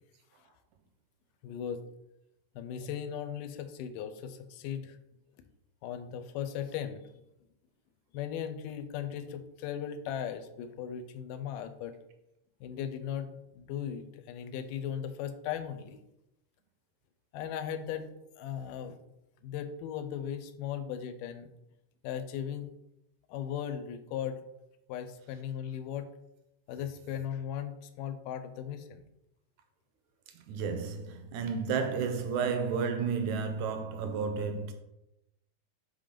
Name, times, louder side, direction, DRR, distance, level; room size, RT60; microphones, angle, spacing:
voice 1, 1.4-1.8 2.6-5.0 5.8-7.1 8.1-12.0 12.6-16.0 17.3-18.1 18.4-19.0 19.4-21.5 22.0-22.7 23.3-24.4 24.9-26.1 26.7-29.0, left 9 dB, 90° left, 2.2 m, -37 dB
voice 2, 30.5-34.7, right 5 dB, 80° right, 1.8 m, -32 dB
5.5 x 3.8 x 5.0 m
omnidirectional pair, 3.6 m